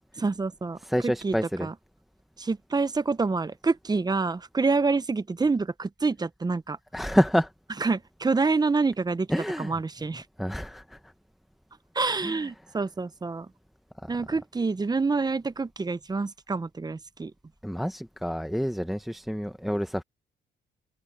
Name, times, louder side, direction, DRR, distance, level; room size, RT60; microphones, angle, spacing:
voice 1, 0.2-0.8 1.0-1.3 1.6-1.7 2.4-6.8 7.8-9.3 9.6-10.2 11.9-13.5 14.1-17.3, right 4 dB, 20° right, 0.8 m, -27 dB
voice 2, 0.8-1.7 6.9-7.5 9.3-9.8 10.1-11.0 12.2-12.5 14.0-14.1 17.6-20.0, equal, ahead, 1.1 m, -28 dB
open air
cardioid pair, 90°, 20 cm